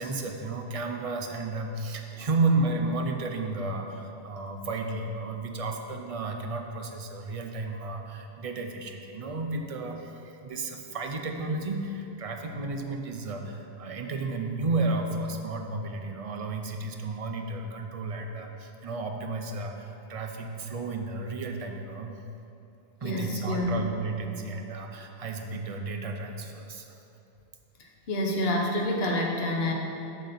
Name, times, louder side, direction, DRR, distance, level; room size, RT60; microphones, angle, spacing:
voice 1, 0.0-22.2 23.0-26.9, right 3 dB, 45° right, 3 dB, 0.5 m, -32 dB
voice 2, 23.0-23.9 28.1-29.7, left 1 dB, 65° left, 0 dB, 1.1 m, -27 dB
6.7 x 6.3 x 4.2 m, 2.7 s
omnidirectional pair, 1.1 m